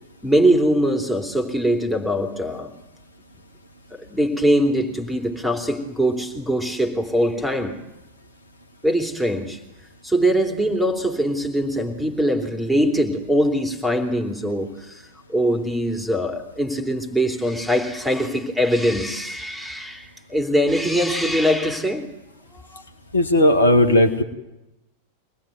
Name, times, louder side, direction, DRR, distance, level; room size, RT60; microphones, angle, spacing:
voice 1, 0.2-2.7 3.9-7.8 8.8-9.6 10.0-22.1 22.7-22.8, equal, ahead, 6 dB, 3.3 m, -22 dB
voice 2, 23.1-24.2, left 1 dB, 70° left, 8 dB, 2.2 m, -16 dB
25.0 x 19.0 x 9.5 m, 0.94 s
figure-of-eight pair, 90°, 0 cm